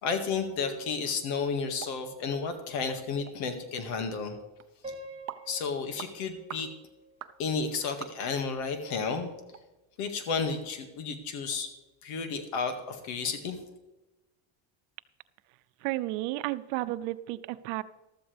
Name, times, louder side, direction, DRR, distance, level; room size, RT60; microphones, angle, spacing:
voice 1, 0.0-4.4 5.5-6.7 7.4-9.3 10.0-11.7 12.0-13.6, left 5 dB, 80° left, 6 dB, 2.1 m, -32 dB
sound 1, 1.8-2.0 2.3-2.4 2.9-3.0 3.3-3.4 3.9-4.1 4.6-4.7 5.3-5.5 6.0-6.1 6.5-6.7 7.2-7.4 8.0-8.4 8.9-9.0 9.5-9.6 10.1-10.2, right 10 dB, 30° right, 0.6 m, -43 dB
Piano, 4.8-7.8, right 1 dB, 10° right, 3.8 m, -47 dB
voice 2, 15.8-17.8, right 17 dB, 90° right, 14 dB, 0.7 m, -32 dB
14.0 x 13.0 x 3.4 m, 1.1 s
cardioid pair, 120°, 50 cm